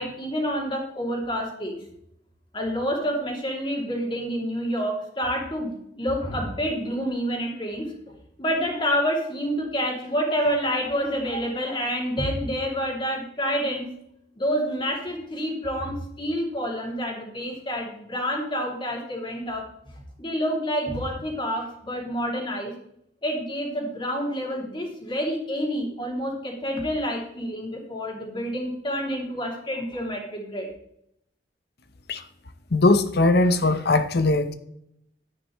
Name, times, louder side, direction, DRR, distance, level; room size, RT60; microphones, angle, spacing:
voice 1, 0.0-1.8 2.5-7.9 8.4-13.9 14.4-19.7 20.2-22.7 23.2-30.7, equal, 30° left, 2.8 m, -28 dB
voice 2, 32.7-34.5, left 2 dB, 65° left, 0.8 m, -20 dB
10.5 x 9.6 x 3.1 m
head